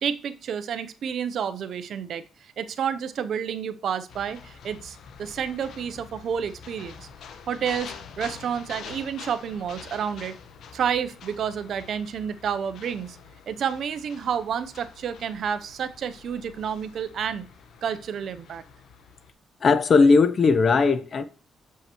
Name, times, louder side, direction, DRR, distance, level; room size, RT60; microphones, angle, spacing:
voice 1, 0.0-7.1 7.5-10.4 10.7-13.2 13.5-17.5 17.8-18.6, right 7 dB, 65° right, 0.6 m, -30 dB
sound 1, 4.1-19.3, left 6 dB, 70° left, 1.0 m, -46 dB
voice 2, 19.6-21.2, left 4 dB, 45° left, 0.7 m, -18 dB
7.3 x 5.6 x 2.9 m
cardioid pair, 90°, 0 cm